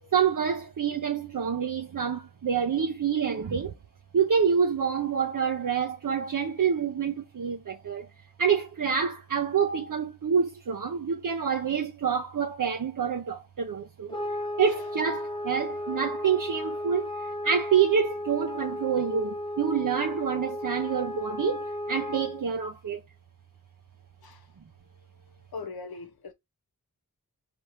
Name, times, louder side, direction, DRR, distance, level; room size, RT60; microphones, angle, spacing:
voice 1, 0.1-3.7 4.1-8.1 8.4-14.1 14.6-17.1 17.4-23.0, right 7 dB, 60° right, 0.7 m, -27 dB
sound 1, 14.1-22.5, left 1 dB, 15° left, 0.9 m, -34 dB
voice 2, 25.5-26.3, left 4 dB, 80° left, 0.9 m, -40 dB
4.4 x 3.4 x 3.0 m
cardioid pair, 45°, 36 cm